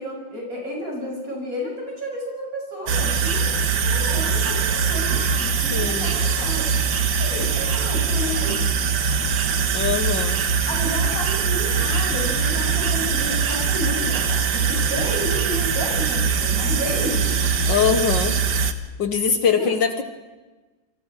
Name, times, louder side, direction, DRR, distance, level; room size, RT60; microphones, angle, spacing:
voice 1, 0.0-6.7 7.2-8.7 10.7-17.4 19.5-19.7, equal, 40° right, -1 dB, 7.3 m, -31 dB
sound 1, 2.9-18.7, right 5 dB, 70° right, 2.0 m, -22 dB
voice 2, 5.7-6.1 9.7-10.5 17.7-18.4 19.0-20.0, left 7 dB, 65° left, 7 dB, 1.9 m, -22 dB
29.0 x 24.5 x 4.9 m, 1.2 s
omnidirectional pair, 2.2 m